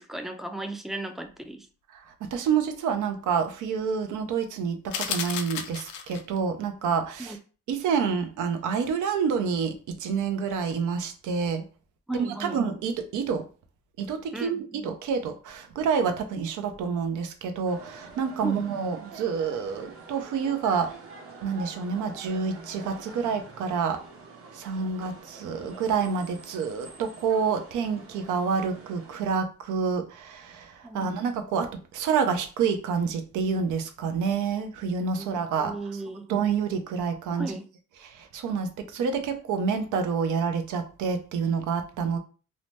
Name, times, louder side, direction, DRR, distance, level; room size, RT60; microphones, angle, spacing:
voice 1, 0.0-1.7 7.2-7.4 12.1-12.6 14.3-14.9 18.4-18.7 30.8-31.1 35.2-36.3 37.4-37.7 38.8-38.9, right 2 dB, ahead, 7 dB, 0.3 m, -35 dB
voice 2, 2.2-7.3 7.7-11.6 12.1-13.4 14.0-20.9 21.4-24.0 24.5-35.7 36.3-37.5 38.1-42.2, right 6 dB, 80° right, 7 dB, 0.6 m, -28 dB
sound 1, 4.9-6.4, left 8 dB, 75° left, 0.5 m, -33 dB
sound 2, 17.7-29.2, right 4 dB, 45° right, 0.9 m, -46 dB
2.8 x 2.0 x 3.2 m, 0.37 s
cardioid pair, 90°, 30 cm